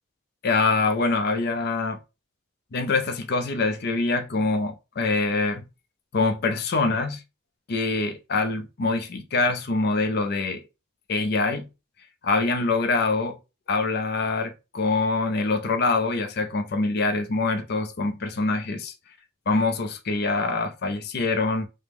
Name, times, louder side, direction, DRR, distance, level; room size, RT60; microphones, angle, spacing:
voice 1, 0.4-2.0 2.7-5.6 6.1-7.2 7.7-10.6 11.1-11.7 12.2-13.4 13.7-18.9 19.5-21.7, left 3 dB, 50° left, 0.5 m, -24 dB
5.0 x 2.1 x 3.4 m
head